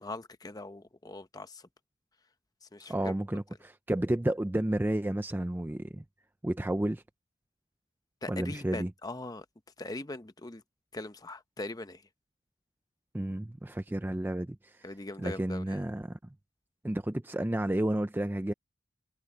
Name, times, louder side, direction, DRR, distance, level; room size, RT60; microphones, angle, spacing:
voice 1, 0.0-1.6 2.7-3.2 8.2-9.4 9.8-10.6 10.9-12.0 14.8-15.8, left 2 dB, 20° left, 0.8 m, -41 dB
voice 2, 2.9-6.0 6.4-7.0 8.3-8.9 13.1-14.8 15.2-16.2 16.8-18.5, right 1 dB, 10° right, 0.4 m, -31 dB
head